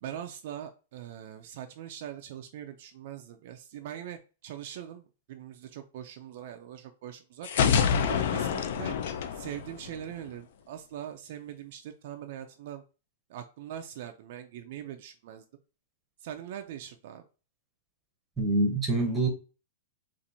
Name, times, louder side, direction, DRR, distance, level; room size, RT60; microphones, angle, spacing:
voice 1, 0.0-7.5 8.0-9.0 9.3-12.8 13.3-15.4 16.2-17.2, right 10 dB, 45° right, 0.4 m, -42 dB
sound 1, 7.4-10.3, left 7 dB, 55° left, 0.4 m, -27 dB
voice 2, 18.4-19.3, right 2 dB, 5° right, 0.8 m, -25 dB
4.2 x 2.5 x 2.6 m
supercardioid pair, 170°, 0 cm